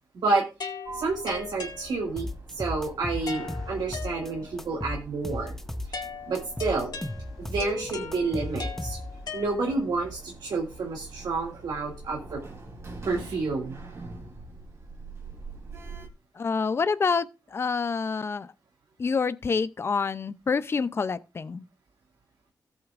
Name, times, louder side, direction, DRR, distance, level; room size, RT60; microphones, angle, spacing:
voice 1, 0.1-0.5 0.9-2.3 2.5-5.6 5.9-6.0 6.3-7.0 7.4-9.0 9.3-12.4 13.1-13.8, right 3 dB, 75° right, 2.2 m, -29 dB
sound 1, 0.6-2.4 3.3-4.7 5.9-10.0, left 5 dB, 65° left, 2.0 m, -40 dB
Sliding door, 0.9-16.1, right 3 dB, 40° right, 3.2 m, -45 dB
sound 2, 2.2-4.3 4.6-6.1 6.4-9.3, left 1 dB, 5° left, 0.8 m, -35 dB
voice 2, 16.4-18.5 19.0-21.6, left 5 dB, 35° left, 0.5 m, -27 dB
17.5 x 8.0 x 2.5 m
wide cardioid pair, 135°, 7 cm